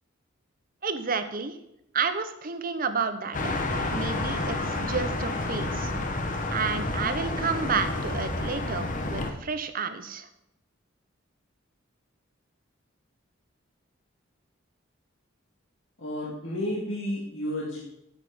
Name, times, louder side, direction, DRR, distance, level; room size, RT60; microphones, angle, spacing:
voice 1, 0.8-1.6 1.9-3.4 3.9-5.9 6.5-10.3, right 5 dB, 45° right, 10 dB, 0.8 m, -30 dB
sound 1, 3.3-9.3, left 2 dB, 40° left, 1.1 m, -30 dB
voice 2, 16.0-17.8, left 1 dB, 70° left, -4 dB, 2.0 m, -31 dB
8.7 x 7.4 x 5.0 m, 0.80 s
head